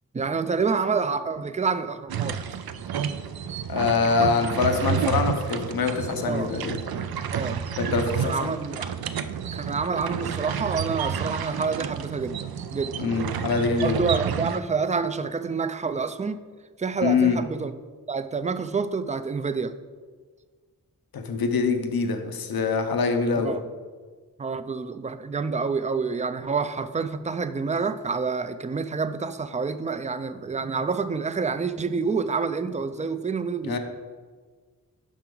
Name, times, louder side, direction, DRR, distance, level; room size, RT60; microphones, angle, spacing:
voice 1, 0.1-2.6 6.2-6.5 7.3-7.6 8.2-8.9 9.5-13.2 13.8-16.4 16.8-17.7 18.1-19.7 23.4-23.6 24.4-33.8, right 5 dB, 20° right, 11 dB, 0.3 m, -28 dB
sound 1, 2.1-14.6, right 8 dB, 90° right, 0.5 m, -30 dB
voice 2, 3.7-6.8 7.8-8.5 13.0-14.0 17.0-17.4 21.1-23.5 33.6-33.8, left 5 dB, 80° left, 5 dB, 0.9 m, -24 dB
10.0 x 5.9 x 3.8 m, 1.5 s
wide cardioid pair, 135°, 35 cm